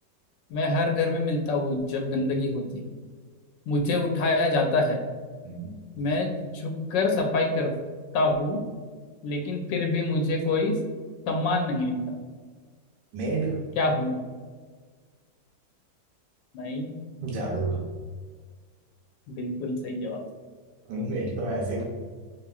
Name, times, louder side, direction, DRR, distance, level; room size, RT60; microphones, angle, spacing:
voice 1, 0.5-2.8 3.7-5.0 6.0-7.7 8.1-8.6 9.2-10.8 11.3-12.2 13.8-14.2 16.5-16.9 19.3-20.2, left 2 dB, 80° left, 2 dB, 1.2 m, -26 dB
voice 2, 13.1-13.6 17.2-17.8 20.9-21.8, right 2 dB, 85° right, -2 dB, 1.4 m, -29 dB
4.4 x 2.9 x 2.3 m, 1.5 s
omnidirectional pair, 1.9 m